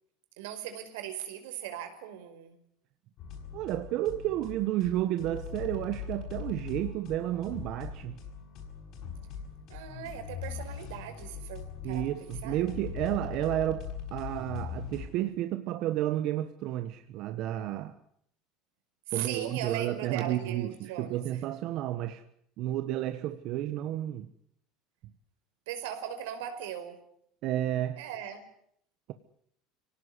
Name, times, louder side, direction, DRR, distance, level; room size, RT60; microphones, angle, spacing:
voice 1, 0.4-2.6 9.7-12.6 19.1-21.2 25.7-27.0 28.0-28.4, right 10 dB, 85° right, 5.2 m, -39 dB
sound 1, 3.2-15.1, left 7 dB, 50° left, 8.0 m, -41 dB
voice 2, 3.5-8.2 11.8-18.0 19.1-22.2 22.6-24.3 27.4-28.0, right 13 dB, 55° right, 1.4 m, -31 dB
25.0 x 18.0 x 9.8 m
supercardioid pair, 135°, 0 cm